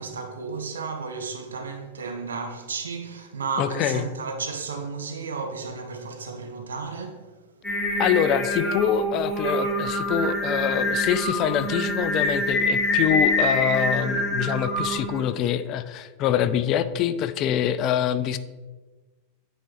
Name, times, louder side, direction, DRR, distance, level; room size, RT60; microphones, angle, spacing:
voice 1, 0.0-7.2, right 4 dB, 70° right, 0.8 m, -33 dB
voice 2, 3.6-4.1 8.0-18.4, left 10 dB, 35° left, 0.3 m, -25 dB
Singing, 7.6-15.2, left 1 dB, 5° left, 2.0 m, -25 dB
9.0 x 4.0 x 3.0 m
figure-of-eight pair, 90°, 0 cm